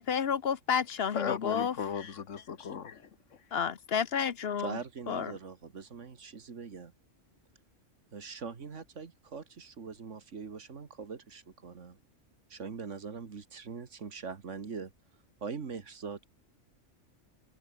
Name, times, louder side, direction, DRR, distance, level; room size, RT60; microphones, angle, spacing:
voice 1, 0.0-1.7 3.5-4.8 5.1-5.4, left 7 dB, 55° left, 1.0 m, -30 dB
voice 2, 1.1-3.4, left 7 dB, 75° left, 1.7 m, -37 dB
voice 3, 4.6-6.9 8.1-12.0 12.5-14.9 15.4-16.2, right 5 dB, 70° right, 2.0 m, -42 dB
omnidirectional pair, 1.3 m